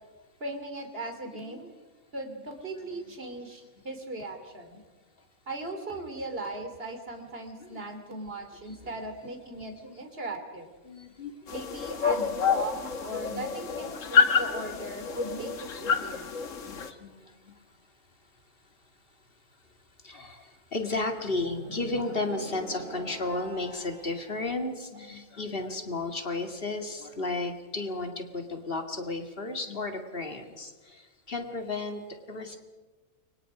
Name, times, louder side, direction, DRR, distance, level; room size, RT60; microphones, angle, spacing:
voice 1, 0.4-1.7 2.1-4.8 5.5-10.7 11.5-16.3 24.9-25.1, right 2 dB, 40° right, 5 dB, 3.3 m, -38 dB
voice 2, 7.6-7.9 9.8-10.0 10.8-11.3 12.1-12.4 13.3-13.4 16.6-17.2 17.5-17.6 20.0-31.0 31.3-32.0 32.3-32.6, left 3 dB, 40° left, 4 dB, 2.4 m, -33 dB
sound 1, 11.5-16.9, left 6 dB, 60° left, 1.7 m, -28 dB
sound 2, 21.3-24.3, right 2 dB, 90° right, 4.3 m, -44 dB
29.5 x 24.5 x 5.0 m, 1.3 s
omnidirectional pair, 1.6 m